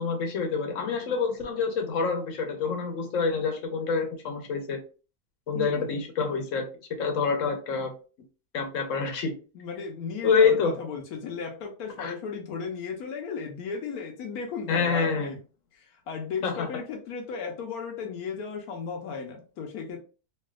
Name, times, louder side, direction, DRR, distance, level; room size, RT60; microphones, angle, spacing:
voice 1, 0.0-4.8 5.5-6.7 7.0-7.9 8.5-9.3 10.2-10.7 12.0-12.1 14.7-15.3 16.4-16.7, left 5 dB, 60° left, 4 dB, 1.1 m, -26 dB
voice 2, 5.5-5.9 9.5-15.4 15.7-20.0, left 5 dB, 80° left, 3 dB, 1.1 m, -35 dB
3.2 x 2.7 x 2.2 m, 0.35 s
omnidirectional pair, 1.6 m